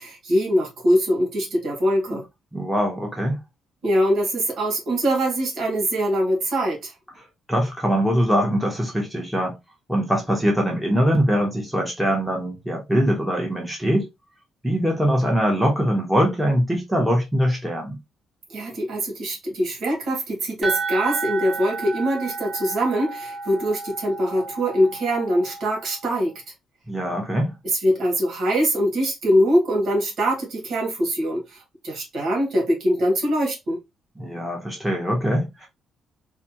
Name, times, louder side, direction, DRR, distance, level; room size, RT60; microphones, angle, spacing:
voice 1, 0.0-2.2 3.8-6.9 18.5-26.3 27.6-33.8, equal, 65° right, 1.8 m, -23 dB
voice 2, 2.5-3.4 7.5-9.6 9.9-14.1 14.6-18.0 26.9-27.5 34.2-35.7, equal, 5° right, 1.3 m, -22 dB
sound 1, 20.6-26.2, right 4 dB, 30° right, 2.3 m, -32 dB
4.2 x 2.5 x 2.9 m
cardioid pair, 125°, 0 cm